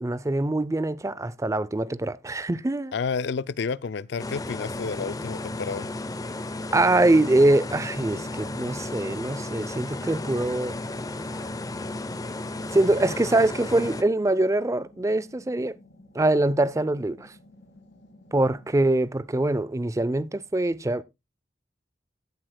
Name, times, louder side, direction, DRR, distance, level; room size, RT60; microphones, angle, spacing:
voice 1, 0.0-2.9 6.7-10.7 12.7-15.8 16.1-17.3 18.3-21.0, right 2 dB, 15° right, 0.5 m, -23 dB
voice 2, 2.9-5.9, left 5 dB, 65° left, 0.4 m, -30 dB
sound 1, 4.2-14.0, left 2 dB, 20° left, 0.7 m, -34 dB
sound 2, 11.4-19.0, left 1 dB, 85° left, 2.1 m, -52 dB
15.0 x 7.8 x 2.2 m
head